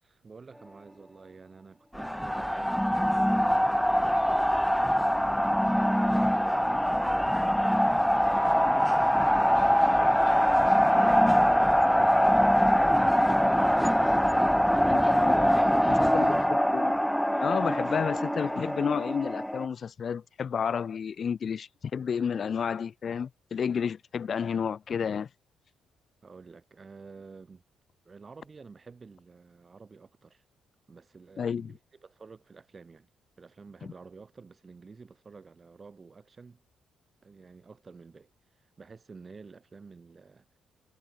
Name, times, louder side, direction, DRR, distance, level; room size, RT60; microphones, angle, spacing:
voice 1, 0.0-2.9 3.3-5.2 5.8-7.5 7.8-10.4 10.7-13.7 14.3-16.6 26.2-27.6 28.1-30.4 30.9-33.1 33.4-36.6 37.2-38.3 38.8-40.5, right 4 dB, 35° right, 7.0 m, -50 dB
sound 1, 1.9-19.7, equal, ahead, 0.6 m, -23 dB
voice 2, 14.9-15.6 16.0-16.3 16.7-16.9 17.3-25.3 31.4-31.7, left 7 dB, 50° left, 0.7 m, -31 dB
cardioid pair, 90°, 0 cm